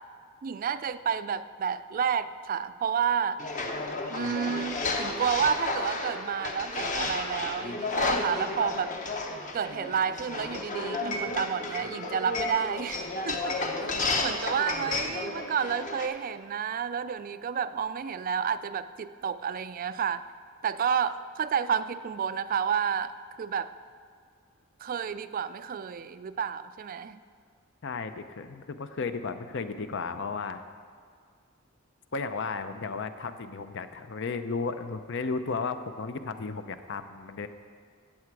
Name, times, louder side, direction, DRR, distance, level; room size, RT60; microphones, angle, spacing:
voice 1, 0.4-3.4 4.1-8.9 9.5-13.9 14.2-20.2 20.6-23.7 24.8-27.2, right 7 dB, 40° right, 14 dB, 0.3 m, -30 dB
sound 1, 3.4-16.1, left 2 dB, 35° left, 0.9 m, -32 dB
voice 2, 27.8-30.6 32.1-37.5, left 4 dB, 60° left, 10 dB, 0.6 m, -34 dB
16.0 x 7.6 x 4.7 m, 2.1 s
head